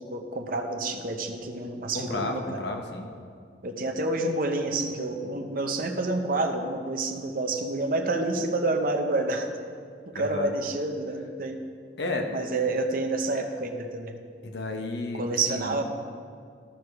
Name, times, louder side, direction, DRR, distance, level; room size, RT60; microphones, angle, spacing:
voice 1, 0.0-2.6 3.6-9.5 10.1-11.6 12.3-14.2 15.2-15.8, right 2 dB, 50° right, 4 dB, 0.8 m, -28 dB
voice 2, 1.9-3.1 10.1-10.5 12.0-12.3 14.4-15.8, left 2 dB, 70° left, 3 dB, 0.9 m, -32 dB
14.0 x 4.9 x 4.7 m, 2.2 s
head